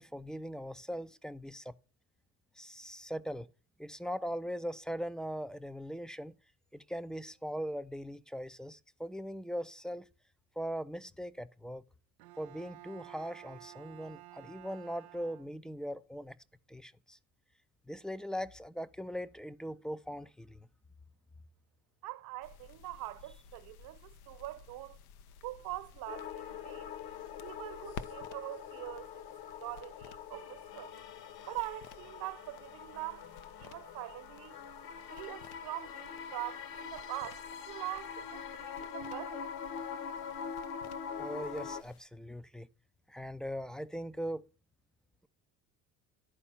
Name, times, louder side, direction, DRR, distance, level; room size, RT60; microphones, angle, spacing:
voice 1, 0.0-1.7 2.6-3.5 3.8-6.4 6.7-10.1 10.6-11.8 12.4-16.4 16.7-17.2 17.9-20.7 41.2-42.7 43.1-44.5, equal, ahead, 0.4 m, -40 dB
Bowed string instrument, 12.2-15.9, right 18 dB, 80° right, 0.7 m, -53 dB
voice 2, 22.0-25.0 25.4-26.9 27.4-29.3 29.6-30.9 31.5-33.3 33.6-34.6 35.1-39.5, right 17 dB, 55° right, 0.9 m, -43 dB
sound 1, 22.4-42.0, left 6 dB, 85° left, 0.8 m, -55 dB
sound 2, 26.1-41.8, left 7 dB, 55° left, 1.4 m, -44 dB
11.5 x 4.4 x 5.6 m
hypercardioid pair, 80°, 42 cm